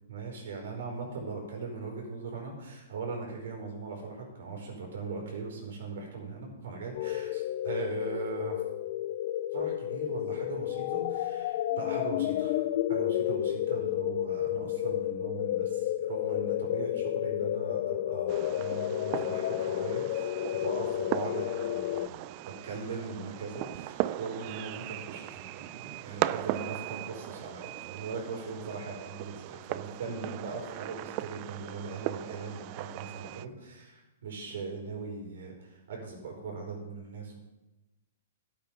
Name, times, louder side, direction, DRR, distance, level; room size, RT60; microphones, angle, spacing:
voice 1, 0.1-8.6 9.5-37.4, right 4 dB, 75° right, 0 dB, 4.8 m, -40 dB
sound 1, 7.0-22.1, left 13 dB, 50° left, 0.4 m, -31 dB
Fireworks, 18.3-33.4, right 16 dB, 35° right, 0.3 m, -38 dB
12.5 x 8.4 x 5.3 m, 1.0 s
hypercardioid pair, 155°, 0 cm